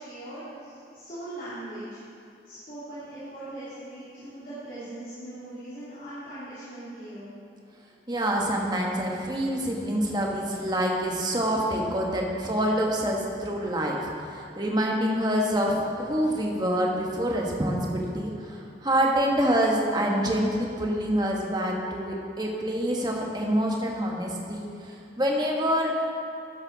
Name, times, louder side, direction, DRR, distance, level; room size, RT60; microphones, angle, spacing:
voice 1, 0.0-2.0 2.4-7.3, right 1 dB, 45° left, -12 dB, 2.8 m, -40 dB
voice 2, 8.1-25.9, equal, 20° right, -1 dB, 1.3 m, -26 dB
12.5 x 10.5 x 4.0 m, 2.4 s
head